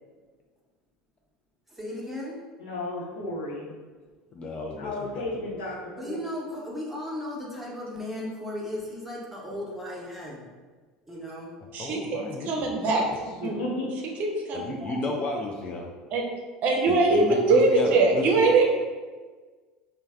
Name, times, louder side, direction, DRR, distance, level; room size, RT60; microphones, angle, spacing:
voice 1, 1.8-2.3 6.0-10.5 11.1-11.5, left 1 dB, 5° right, -4 dB, 1.0 m, -35 dB
voice 2, 2.6-3.7 4.8-6.2 13.4-13.9, left 1 dB, 75° left, -3 dB, 0.8 m, -33 dB
voice 3, 4.3-5.6 11.6-13.1 14.5-15.9 16.9-18.4, left 2 dB, 35° left, 0 dB, 0.4 m, -33 dB
voice 4, 11.7-13.6 14.2-14.8 16.1-16.2 16.6-18.7, right 3 dB, 50° right, 1 dB, 0.7 m, -22 dB
3.1 x 2.2 x 3.5 m, 1.4 s
hypercardioid pair, 75°, 3 cm